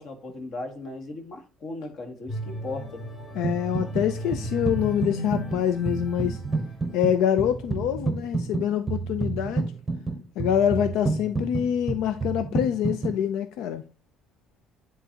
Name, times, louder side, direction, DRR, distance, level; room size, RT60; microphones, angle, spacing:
voice 1, 0.0-3.0, left 2 dB, 50° left, 1.6 m, -37 dB
sound 1, 2.3-7.5 8.0-8.2, equal, 25° left, 3.3 m, -36 dB
voice 2, 3.3-6.4 6.9-9.7 10.4-13.8, left 9 dB, 85° left, 0.5 m, -25 dB
sound 2, 3.4-4.1 4.3-13.2, right 3 dB, 15° right, 0.8 m, -30 dB
9.8 x 4.0 x 2.9 m
cardioid pair, 150°, 0 cm